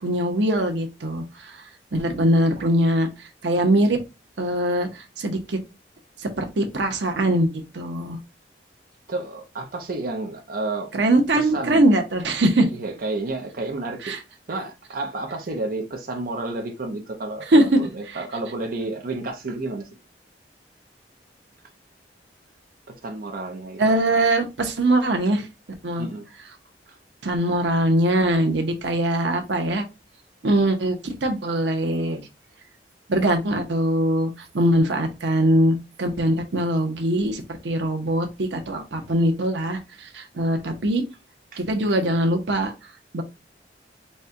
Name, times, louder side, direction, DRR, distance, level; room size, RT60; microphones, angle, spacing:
voice 1, 0.0-1.6 1.9-3.1 3.4-4.0 4.4-5.6 6.2-8.2 10.9-12.7 14.0-14.2 17.5-17.8 23.8-25.5 25.8-26.1 27.2-29.8 30.4-32.2 33.1-41.0 41.6-42.7 43.1-43.2, right 1 dB, 90° right, 0.8 m, -22 dB
voice 2, 9.1-10.9 11.3-11.8 12.7-14.2 14.5-19.9 23.0-24.3 26.0-26.3 26.9-27.0 41.5-41.6, right 2 dB, 55° right, 0.6 m, -31 dB
4.1 x 2.2 x 3.6 m
head